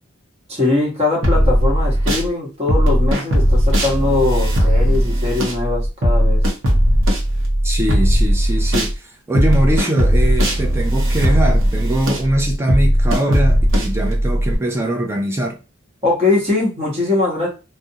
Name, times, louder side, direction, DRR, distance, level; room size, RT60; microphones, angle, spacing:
voice 1, 0.5-6.4 16.0-17.5, left 3 dB, 30° right, 1.0 m, -21 dB
sound 1, 1.2-2.3 2.7-8.9 9.3-14.6, equal, 65° right, 0.7 m, -17 dB
voice 2, 7.6-8.9 9.3-15.6, right 1 dB, 10° right, 0.3 m, -22 dB
2.5 x 2.0 x 2.7 m
head